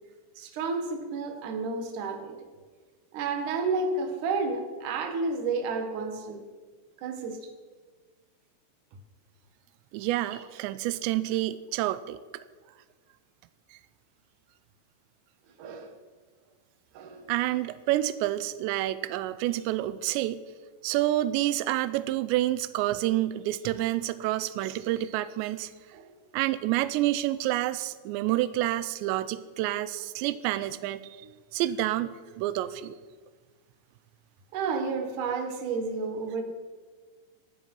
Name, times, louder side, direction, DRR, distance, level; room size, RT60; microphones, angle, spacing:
voice 1, 0.4-2.3 3.1-6.4 7.0-7.5 10.3-10.4 15.6-15.9 16.9-17.7 25.9-26.1 34.5-36.4, right 4 dB, 55° right, 4 dB, 2.8 m, -31 dB
voice 2, 9.9-12.2 17.3-20.4 20.8-25.7 26.3-33.0, right 15 dB, 90° right, 15 dB, 2.9 m, -28 dB
16.0 x 11.5 x 5.5 m, 1.4 s
omnidirectional pair, 5.0 m